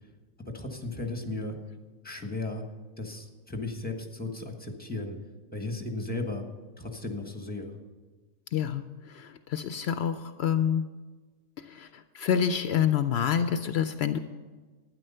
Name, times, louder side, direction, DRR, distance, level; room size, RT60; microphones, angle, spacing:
voice 1, 0.4-1.6 2.0-2.6 3.0-5.2 5.5-6.4 6.8-7.7, left 2 dB, 10° left, 4 dB, 1.3 m, -35 dB
voice 2, 8.5-10.9 11.6-14.2, left 8 dB, 70° left, 10 dB, 0.8 m, -28 dB
12.0 x 9.8 x 5.6 m, 1.3 s
omnidirectional pair, 1.2 m